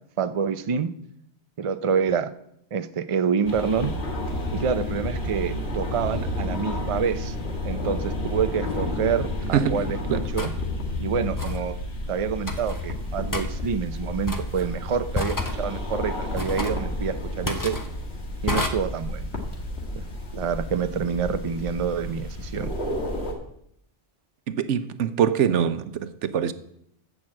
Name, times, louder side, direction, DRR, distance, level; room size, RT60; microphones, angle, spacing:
voice 1, 0.2-0.9 1.6-2.3 2.7-3.9 4.5-7.3 7.6-10.5 11.0-11.8 12.1-17.8 18.4-19.3 20.0-20.1 20.3-22.7, right 6 dB, 40° right, 0.5 m, -27 dB
sound 1, 3.5-23.3, left 1 dB, 65° left, 2.2 m, -31 dB
sound 2, 8.7-8.8 10.4-10.6 11.4-11.6 12.5-12.8 13.3-13.5 14.3-14.7 15.1-15.6 16.4-16.8 17.5-17.9 18.5-18.7, left 2 dB, 20° left, 1.0 m, -29 dB
voice 2, 9.5-9.8 10.1-10.2 24.5-26.5, right 8 dB, 90° right, 1.1 m, -24 dB
14.0 x 6.2 x 7.4 m
omnidirectional pair, 1.2 m